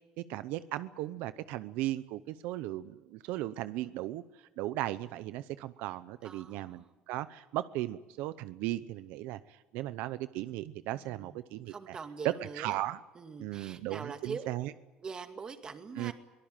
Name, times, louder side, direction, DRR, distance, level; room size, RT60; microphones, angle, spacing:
voice 1, 0.2-4.2 4.6-9.4 9.7-12.0 12.6-13.0 13.4-14.7 16.0-16.1, right 15 dB, 80° right, 14 dB, 0.8 m, -37 dB
voice 2, 6.2-6.9 10.9-12.8 13.1-14.5 15.0-16.1, right 5 dB, 25° right, 7 dB, 2.1 m, -43 dB
23.0 x 18.5 x 9.1 m, 1.1 s
cardioid pair, 140°, 3 cm